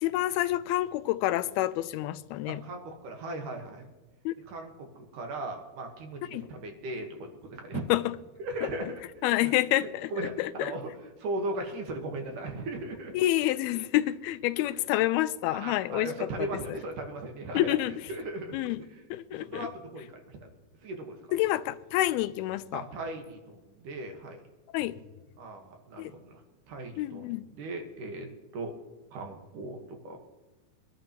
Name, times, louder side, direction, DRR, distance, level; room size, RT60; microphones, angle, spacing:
voice 1, 0.0-2.6 4.3-4.4 6.3-6.4 7.9-8.1 8.6-8.9 9.2-10.1 10.4-10.8 13.1-16.8 17.5-17.9 18.5-18.8 19.1-19.7 21.3-22.8 24.7-24.9 26.0-26.1 27.0-27.5, left 15 dB, 85° left, 2.5 m, -28 dB
voice 2, 2.5-3.9 4.5-7.8 8.4-8.9 9.2-9.5 9.8-10.9 11.2-13.1 15.5-17.7 18.1-18.6 19.4-20.1 20.4-20.5 20.8-21.2 22.7-24.4 25.4-26.4 26.7-27.3 27.6-28.7 29.1-30.2, right 2 dB, 65° right, 2.6 m, -37 dB
24.0 x 11.0 x 2.9 m
omnidirectional pair, 4.4 m